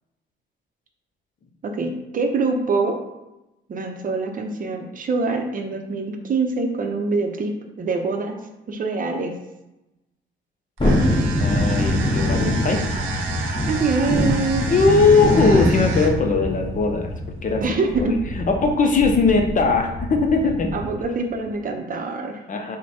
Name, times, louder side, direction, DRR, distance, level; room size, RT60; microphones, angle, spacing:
voice 1, 1.6-2.9 3.7-8.4 8.7-9.4 13.6-14.7 17.6-18.2 20.7-22.5, right 3 dB, 45° right, 4 dB, 0.6 m, -24 dB
Thunderstorm, 10.8-21.0 21.3-21.4, left 1 dB, 25° left, 1.3 m, -24 dB
sound 1, 10.8-16.3, right 4 dB, 85° right, 0.7 m, -31 dB
voice 2, 11.4-12.9 14.7-17.1 17.4-17.6 18.0-20.7 22.5-22.8, left 4 dB, 40° left, 4 dB, 0.6 m, -19 dB
4.5 x 2.2 x 4.2 m, 0.96 s
cardioid pair, 90°, 20 cm